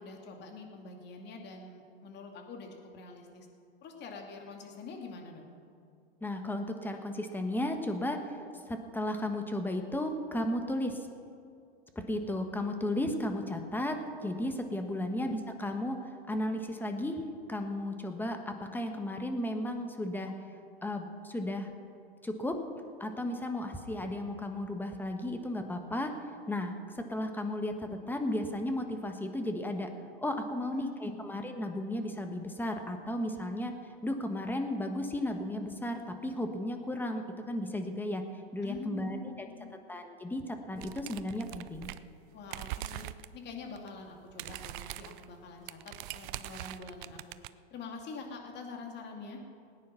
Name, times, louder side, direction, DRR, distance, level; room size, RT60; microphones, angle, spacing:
voice 1, 0.0-3.5 3.8-5.5 15.0-15.1 30.7-31.3 38.6-39.8 42.3-43.0 43.3-47.2 47.7-49.4, left 4 dB, 35° left, 2 dB, 2.5 m, -45 dB
voice 2, 6.2-8.4 8.7-11.1 11.9-17.2 17.5-20.3 20.8-21.7 22.2-22.5 23.0-26.1 26.5-29.9 30.2-33.7 34.0-38.2 38.5-39.3 39.9-41.9, left 1 dB, 5° left, 5 dB, 1.3 m, -34 dB
sound 1, 40.8-42.2 42.5-43.3 43.7-43.9 44.1-47.5, right 15 dB, 55° right, 0.6 m, -42 dB
18.5 x 9.7 x 5.8 m, 2.4 s
hypercardioid pair, 120°, 30 cm